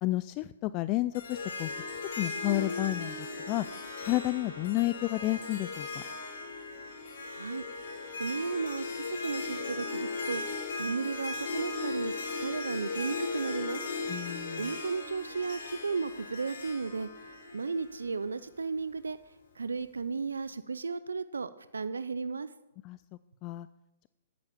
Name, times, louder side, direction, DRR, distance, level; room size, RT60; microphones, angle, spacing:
voice 1, 0.0-1.7 2.2-3.7 4.0-6.0 14.1-14.7 22.8-23.0 23.4-23.7, left 18 dB, 35° left, 15 dB, 0.3 m, -31 dB
Harp, 1.1-18.4, left 3 dB, 60° left, 4.4 m, -37 dB
voice 2, 7.3-12.1 12.4-13.8 14.6-22.5, right 4 dB, 85° right, 14 dB, 0.5 m, -35 dB
9.7 x 9.2 x 7.1 m, 0.98 s
hypercardioid pair, 125°, 0 cm